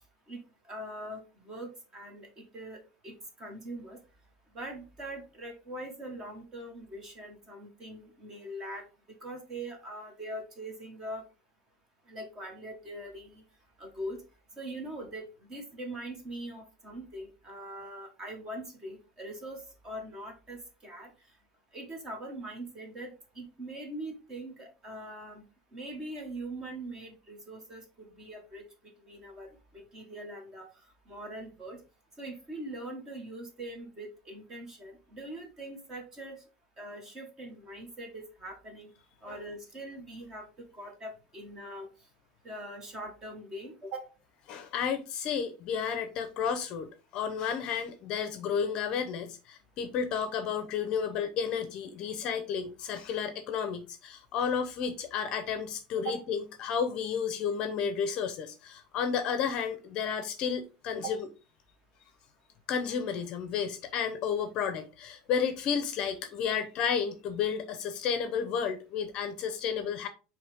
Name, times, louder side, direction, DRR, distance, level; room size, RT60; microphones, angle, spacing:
voice 1, 0.7-4.0 4.5-8.8 9.2-11.2 12.1-13.4 13.8-14.2 14.6-21.1 21.7-25.4 25.7-28.6 29.0-30.7 31.1-31.8 32.2-36.4 36.8-38.9 39.2-40.5 40.7-41.9 42.4-44.1 56.0-56.2 60.9-61.2, right 1 dB, 20° right, 1.5 m, -42 dB
voice 2, 44.5-61.2 62.7-70.1, left 7 dB, 35° left, 0.7 m, -32 dB
8.3 x 3.2 x 3.5 m
cardioid pair, 175°, 2 cm